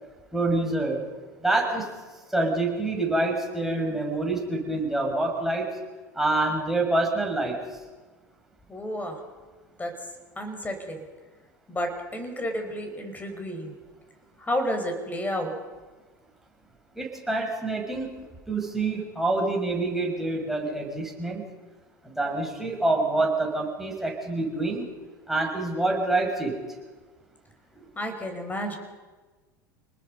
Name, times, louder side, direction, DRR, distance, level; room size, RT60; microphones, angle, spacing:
voice 1, 0.3-1.0 1.4-1.9 2.3-5.7 6.1-7.6 16.9-21.4 22.0-24.9 25.3-26.6, right 2 dB, 5° right, -1 dB, 6.5 m, -26 dB
voice 2, 8.7-9.2 9.8-9.9 10.4-11.0 11.7-13.7 14.4-15.5 27.8-28.7, equal, 15° left, 5 dB, 5.6 m, -31 dB
29.0 x 20.0 x 5.5 m, 1.3 s
hypercardioid pair, 80°, 10 cm